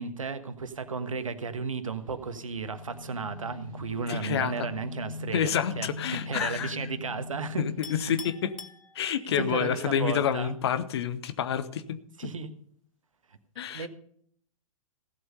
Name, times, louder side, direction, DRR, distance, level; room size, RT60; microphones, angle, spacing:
voice 1, 0.0-7.6 8.0-8.1 9.4-10.5 12.2-12.5 13.7-13.9, right 5 dB, 70° right, 10 dB, 1.3 m, -34 dB
sound 1, 1.9-8.3, left 2 dB, 90° left, 4.2 m, -41 dB
voice 2, 4.1-4.7 5.3-6.8 7.6-8.5 8.9-12.0 13.6-13.9, left 8 dB, 50° left, 13 dB, 0.9 m, -28 dB
Chink clink, 7.8-9.5, left 5 dB, 75° left, 1.1 m, -45 dB
16.5 x 7.9 x 5.4 m, 0.62 s
figure-of-eight pair, 110°, 18 cm